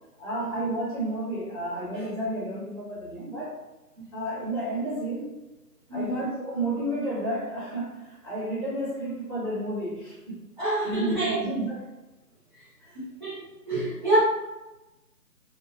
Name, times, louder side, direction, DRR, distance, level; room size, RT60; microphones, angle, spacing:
voice 1, 0.2-3.5 4.1-5.4 5.9-10.4 10.8-12.0 12.8-13.0, right 1 dB, 5° right, -25 dB, 1.2 m, -31 dB
voice 2, 5.9-6.2 10.6-11.4 12.5-12.6 13.2-14.2, right 1 dB, 30° right, -12 dB, 1.2 m, -28 dB
2.9 x 2.6 x 2.6 m, 1.0 s
figure-of-eight pair, 160°, 48 cm